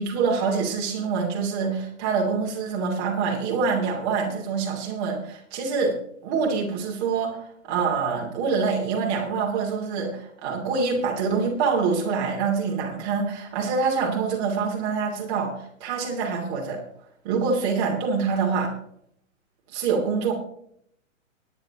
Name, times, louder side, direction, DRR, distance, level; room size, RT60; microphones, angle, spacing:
voice 1, 0.0-6.0 6.2-7.4 7.6-16.8 17.2-18.7 19.7-20.3, right 5 dB, 20° right, -1 dB, 2.8 m, -25 dB
23.5 x 10.5 x 3.0 m, 0.68 s
hypercardioid pair, 180°, 40 cm